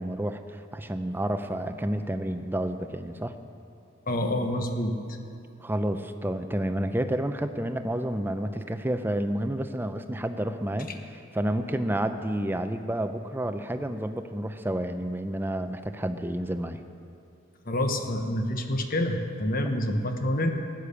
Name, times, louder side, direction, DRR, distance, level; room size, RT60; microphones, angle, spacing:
voice 1, 0.0-3.4 5.6-10.9 11.3-16.8, right 1 dB, 10° right, 8 dB, 0.6 m, -30 dB
voice 2, 4.1-4.9 17.7-20.5, left 1 dB, 50° left, 5 dB, 1.2 m, -27 dB
14.5 x 10.0 x 7.0 m, 2.5 s
head